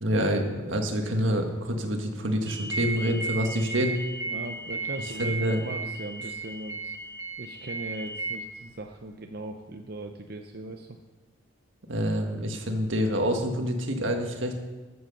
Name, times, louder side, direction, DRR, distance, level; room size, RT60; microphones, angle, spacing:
voice 1, 0.0-4.0 5.2-5.6 11.9-14.5, equal, 75° right, 4 dB, 1.6 m, -27 dB
sound 1, 2.5-8.4, right 3 dB, 15° right, 0.9 m, -34 dB
voice 2, 4.3-7.0 7.4-11.0, right 2 dB, 50° right, 4 dB, 0.6 m, -39 dB
13.0 x 7.9 x 6.7 m, 1.3 s
head